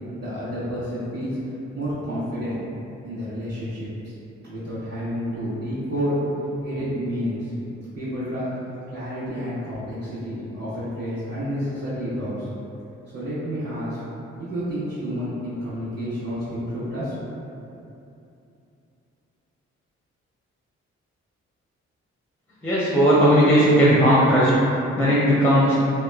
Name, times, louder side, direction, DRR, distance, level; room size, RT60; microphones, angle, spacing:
voice 1, 0.1-2.7 3.0-4.1 4.4-6.2 6.6-7.5 7.9-8.5 8.9-12.5 13.1-14.0 14.4-17.1, equal, 40° right, -16 dB, 1.3 m, -30 dB
voice 2, 22.6-24.5 25.0-25.8, equal, 5° left, -7 dB, 0.6 m, -17 dB
2.8 x 2.1 x 2.3 m, 2.7 s
supercardioid pair, 45°, 30 cm